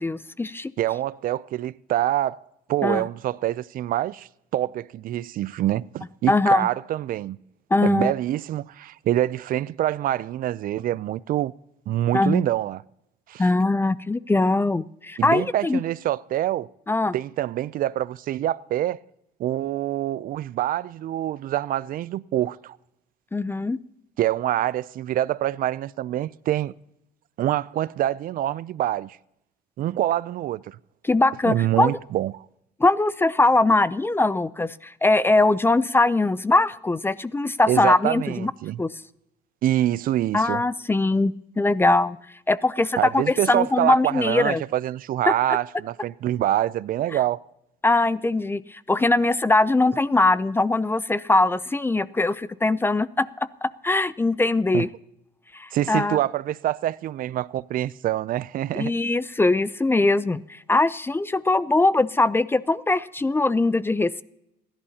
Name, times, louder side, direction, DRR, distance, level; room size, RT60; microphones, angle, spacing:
voice 1, 0.0-0.7 2.8-3.0 6.3-6.7 7.7-8.1 12.1-12.4 13.4-15.8 16.9-17.1 23.3-23.8 31.0-31.9 32.8-38.5 38.8-38.9 40.3-42.2 42.5-44.6 45.3-45.4 47.8-53.3 53.6-54.9 55.5-56.2 58.7-64.2, left 2 dB, 15° left, 0.4 m, -21 dB
voice 2, 0.8-2.4 2.7-7.4 7.8-11.5 11.9-12.8 13.3-13.5 15.2-16.7 17.1-19.0 19.4-22.8 24.2-26.7 27.4-29.2 29.8-30.8 31.5-32.5 37.7-38.8 39.6-40.6 43.0-47.4 54.7-54.9 55.7-58.9, right 13 dB, 55° right, 0.4 m, -25 dB
29.5 x 11.0 x 2.8 m
cardioid pair, 110°, 17 cm